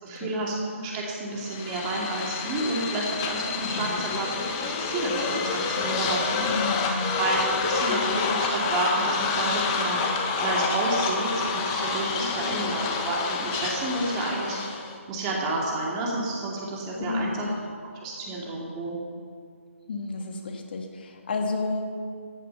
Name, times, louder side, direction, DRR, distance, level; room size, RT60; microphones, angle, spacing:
voice 1, 0.0-6.5 7.2-10.0 10.4-14.6 15.1-17.5 18.0-19.0, right 2 dB, 20° right, -3 dB, 2.6 m, -30 dB
sound 1, 1.4-15.0, left 5 dB, 20° left, 1.4 m, -28 dB
voice 2, 3.6-4.2 6.4-7.1 12.2-12.7 17.1-17.5 19.9-21.9, left 3 dB, 45° left, 3 dB, 2.3 m, -32 dB
14.5 x 12.0 x 7.0 m, 2.2 s
figure-of-eight pair, 145°, 7 cm